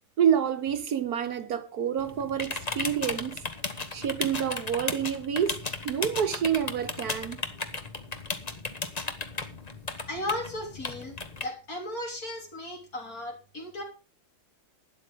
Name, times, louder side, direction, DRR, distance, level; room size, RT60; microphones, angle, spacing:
voice 1, 0.2-3.4 3.9-5.6 5.8-7.4, right 8 dB, 65° right, 1.4 m, -28 dB
sound 1, 2.0-11.5, left 3 dB, 25° left, 1.1 m, -35 dB
voice 2, 10.1-13.8, left 1 dB, 55° left, 3.9 m, -36 dB
12.0 x 9.4 x 5.1 m
omnidirectional pair, 1.9 m